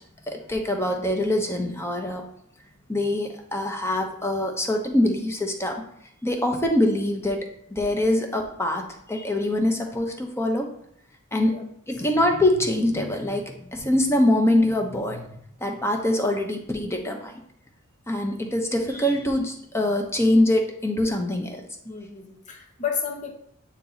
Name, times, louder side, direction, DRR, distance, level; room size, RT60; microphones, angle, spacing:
voice 1, 0.3-2.2 2.9-5.8 6.2-7.4 7.7-8.8 9.1-10.7 11.3-11.5 11.9-15.2 15.6-17.3 18.1-21.6, left 1 dB, 10° left, 3 dB, 0.9 m, -24 dB
voice 2, 11.3-11.6 21.8-23.3, left 6 dB, 35° left, 3 dB, 1.0 m, -32 dB
8.7 x 2.9 x 4.0 m, 0.71 s
head